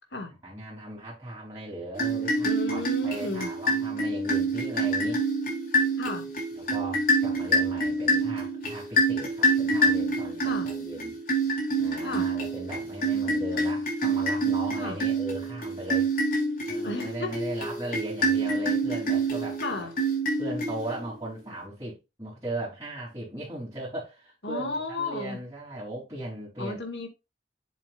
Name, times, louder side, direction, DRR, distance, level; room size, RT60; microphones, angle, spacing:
voice 1, 0.4-5.2 6.5-11.2 11.8-16.1 16.7-19.9 20.4-26.8, right 1 dB, 20° right, 3.6 m, -38 dB
sound 1, 1.9-21.2, right 2 dB, 50° left, 4.0 m, -27 dB
voice 2, 2.4-3.5 6.0-6.3 10.4-10.7 12.0-12.3 14.8-15.0 16.8-17.3 19.6-19.9 24.4-25.4 26.6-27.1, left 3 dB, 70° left, 2.1 m, -33 dB
7.7 x 7.4 x 2.5 m
head